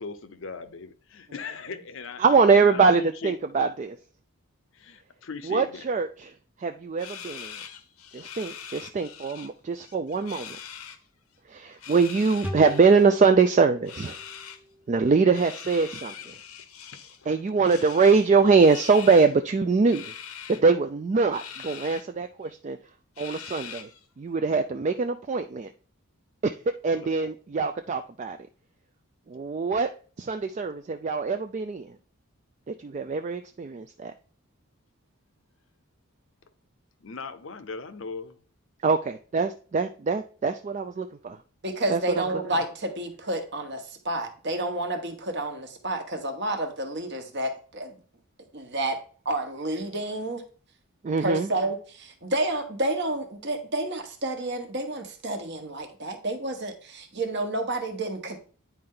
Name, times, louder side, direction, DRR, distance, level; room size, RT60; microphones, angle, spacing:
voice 1, 0.0-2.2 2.5-3.4 4.7-5.8 17.2-17.4 26.9-27.3 37.0-38.4, left 4 dB, 60° left, 12 dB, 0.6 m, -39 dB
voice 2, 2.2-4.0 5.4-6.3 6.6-7.6 8.1-10.6 11.5-14.2 14.9-16.3 17.3-20.1 20.5-22.8 23.2-23.9 24.2-25.7 26.4-26.6 26.8-28.4 29.3-29.9 30.2-32.0 32.7-34.1 38.8-41.4 41.9-42.2 51.0-51.5, right 4 dB, 35° right, 8 dB, 0.3 m, -23 dB
sound 1, 7.0-9.5 9.8-11.0 11.7-13.1 13.8-14.6 15.3-17.2 17.6-19.3 19.9-20.6 21.3-22.0 22.4-22.5 23.2-24.0, left 8 dB, 90° left, 0.8 m, -42 dB
sound 2, 12.4-15.8, equal, 5° right, 0.8 m, -41 dB
voice 3, 41.6-48.0 48.5-49.0 49.2-50.4 51.2-58.4, right 1 dB, 50° right, 6 dB, 1.2 m, -30 dB
9.5 x 4.3 x 3.8 m, 0.41 s
head